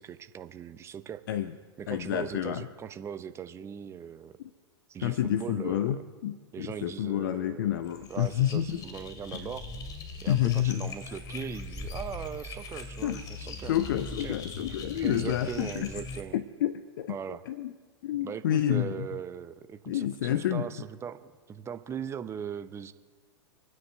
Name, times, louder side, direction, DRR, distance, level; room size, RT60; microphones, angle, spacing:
voice 1, 0.0-1.2 1.8-4.4 4.9-6.0 6.5-7.8 8.1-9.7 10.2-13.8 14.2-14.4 14.9-16.4 17.1-17.4 18.2-22.9, right 8 dB, 20° right, 11 dB, 0.7 m, -39 dB
voice 2, 1.9-2.7 4.4-4.5 5.0-8.8 9.3-9.4 10.3-10.9 13.0-13.2 13.6-15.9 16.3-17.2 17.5-17.7 18.0-19.1 19.9-20.7, left 12 dB, 55° left, 11 dB, 0.7 m, -29 dB
sound 1, 7.8-16.2, left 3 dB, 30° left, 2.3 m, -41 dB
26.0 x 9.6 x 4.5 m, 1.5 s
figure-of-eight pair, 95°, 14 cm